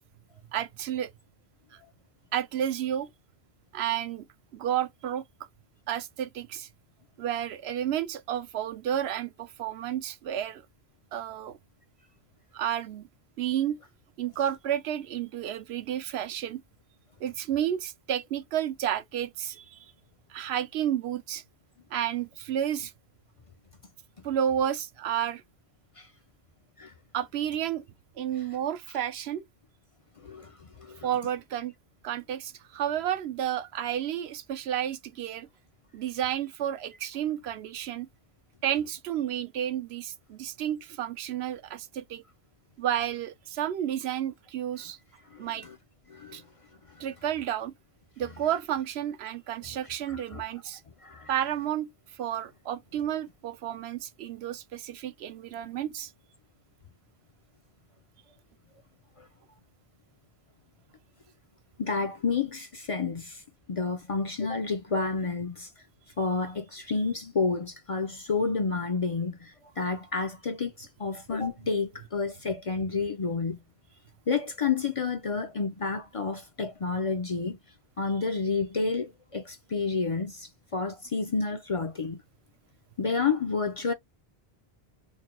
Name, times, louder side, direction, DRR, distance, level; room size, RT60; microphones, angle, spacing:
voice 1, 0.5-1.1 1.7-1.8 2.3-3.1 3.7-4.3 4.5-5.2 5.9-6.7 7.2-10.6 11.1-11.6 12.5-13.1 13.4-13.8 14.2-16.6 17.2-19.9 20.3-21.4 21.9-22.9 24.2-25.4 27.1-27.9 28.2-29.4 31.0-31.7 32.0-35.5 35.9-38.1 38.6-42.2 42.8-45.0 45.4-45.7 46.3-46.4 47.0-47.7 48.2-50.8 51.3-51.9 52.2-56.1, right 10 dB, 80° right, 0.9 m, -31 dB
voice 2, 30.2-31.1 45.3-45.8 46.1-46.4 50.1-50.4 51.0-51.3 59.2-59.3 61.8-63.4 63.7-65.7 66.2-73.6 74.3-77.6 78.0-82.2 83.0-83.9, left 4 dB, 40° left, 0.5 m, -30 dB
4.4 x 3.2 x 2.2 m
omnidirectional pair, 1.1 m